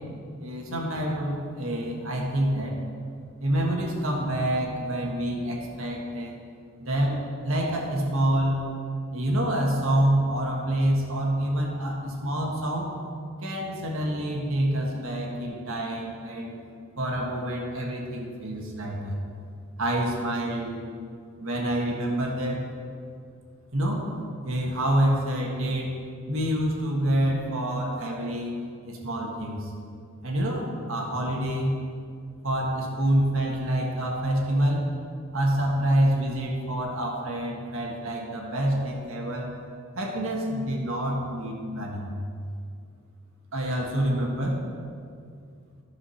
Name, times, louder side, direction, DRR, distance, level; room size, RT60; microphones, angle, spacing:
voice 1, 0.4-2.8 3.4-6.3 6.8-8.6 9.1-12.9 13.4-16.5 17.0-19.2 19.8-20.8 21.4-22.6 23.7-24.0 24.4-25.9 26.3-28.5 28.8-29.7 30.2-31.8 32.4-34.9 35.3-39.5 40.0-42.1 43.5-44.6, right 1 dB, 70° right, -1 dB, 1.5 m, -27 dB
11.5 x 5.0 x 5.6 m, 2.3 s
head